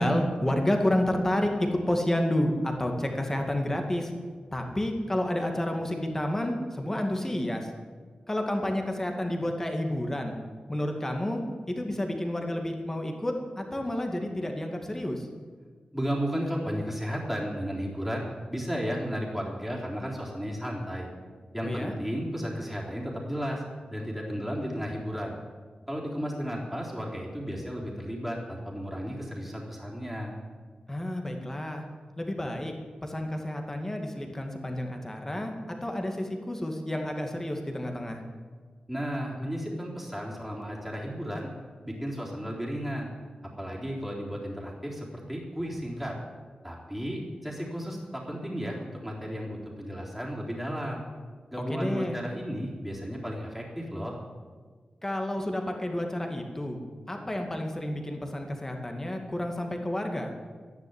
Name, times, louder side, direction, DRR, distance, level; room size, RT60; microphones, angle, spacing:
voice 1, 0.0-4.1 4.5-7.7 8.3-10.3 10.7-11.4 11.7-15.3 21.6-22.0 30.9-31.8 32.2-32.7 33.0-35.5 35.8-38.2 51.7-52.2 55.0-56.8 57.1-60.3, left 1 dB, 15° left, 3 dB, 2.2 m, -30 dB
voice 2, 15.9-18.2 18.5-21.1 21.5-23.6 23.9-25.4 25.9-30.3 38.9-41.5 41.8-43.1 43.6-46.2 46.6-51.0 51.5-54.2, equal, 5° right, -3 dB, 3.7 m, -33 dB
13.0 x 10.5 x 9.7 m, 1.5 s
wide cardioid pair, 145°, 3 cm